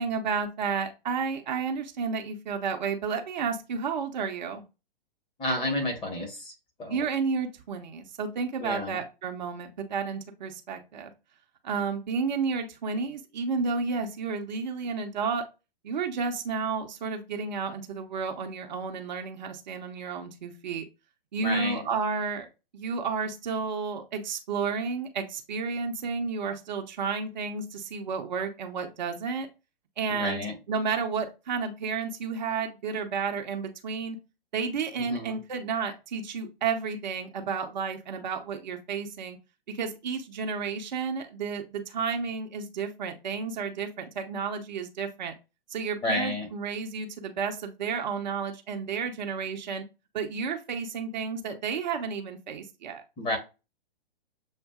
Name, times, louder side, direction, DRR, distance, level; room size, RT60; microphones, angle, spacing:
voice 1, 0.0-4.6 6.9-11.1 11.6-15.4 15.8-20.8 21.3-22.5 22.7-29.5 30.0-30.4 30.7-34.2 34.5-39.4 39.7-45.3 45.7-49.8 50.1-53.0, right 5 dB, 50° right, 4 dB, 0.8 m, -31 dB
voice 2, 5.4-6.5 6.8-7.0 8.6-9.0 21.4-21.9 30.1-30.6 35.0-35.4 46.0-46.5 53.2-53.4, left 1 dB, 15° left, 1 dB, 1.4 m, -31 dB
7.1 x 2.6 x 2.3 m, 0.28 s
figure-of-eight pair, 115°, 29 cm